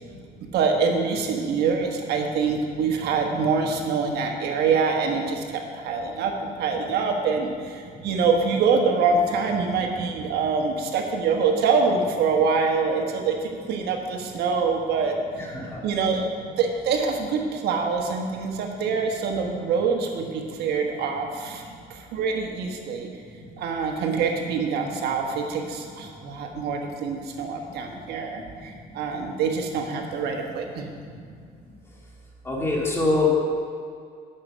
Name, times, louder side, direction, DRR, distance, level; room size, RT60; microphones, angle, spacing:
voice 1, 0.5-15.2 15.8-16.3 16.6-21.6 21.9-23.1 23.6-30.9, right 5 dB, 75° right, 2 dB, 1.4 m, -25 dB
voice 2, 15.4-15.8 32.4-33.3, left 3 dB, 15° left, -4 dB, 2.4 m, -24 dB
8.6 x 6.8 x 6.2 m, 2.2 s
cardioid pair, 110°, 17 cm